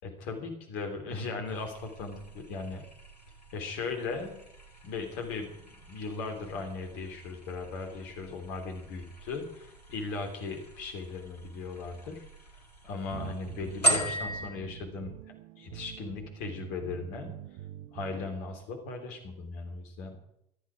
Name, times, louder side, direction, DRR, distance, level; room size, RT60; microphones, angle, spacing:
voice 1, 0.0-2.9 3.5-4.4 4.8-12.2 12.8-17.3 17.9-20.1, left 4 dB, 60° left, 4 dB, 3.5 m, -38 dB
sound 1, 1.4-14.5, right 1 dB, 85° left, 1.9 m, -38 dB
sound 2, 13.1-18.4, right 13 dB, 60° right, 0.7 m, -45 dB
18.0 x 12.5 x 5.0 m, 0.77 s
figure-of-eight pair, 60°, 20 cm